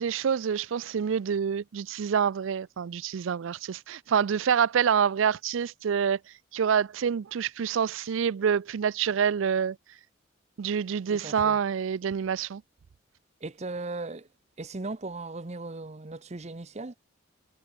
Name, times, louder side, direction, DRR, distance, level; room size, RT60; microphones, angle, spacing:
voice 1, 0.0-6.2 6.5-9.8 10.6-12.6, right 7 dB, 75° right, 0.4 m, -27 dB
voice 2, 11.1-11.6 13.4-14.3 14.6-17.0, right 3 dB, 35° right, 0.8 m, -37 dB
head